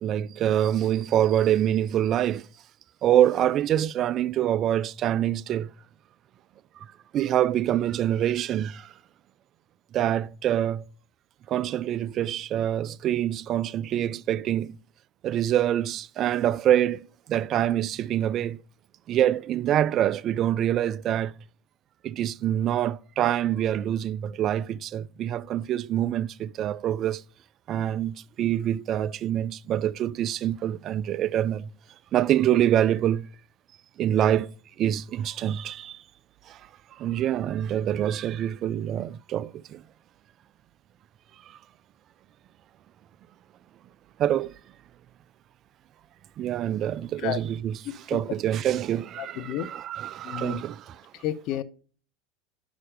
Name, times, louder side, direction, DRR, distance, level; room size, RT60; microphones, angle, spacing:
voice 1, 0.0-2.5 3.0-5.7 7.1-8.9 9.9-10.8 11.5-14.8 15.2-18.6 19.1-21.3 22.0-27.2 27.7-31.7 32.1-33.3 34.0-36.0 36.5-36.6 36.9-39.8 41.5-41.6 44.2-44.5 46.4-51.0, right 11 dB, 45° right, 0.3 m, -25 dB
voice 2, 49.2-49.7 50.2-50.6 51.2-51.6, left 13 dB, 55° left, 0.7 m, -31 dB
5.6 x 4.9 x 6.4 m
hypercardioid pair, 80°, 0 cm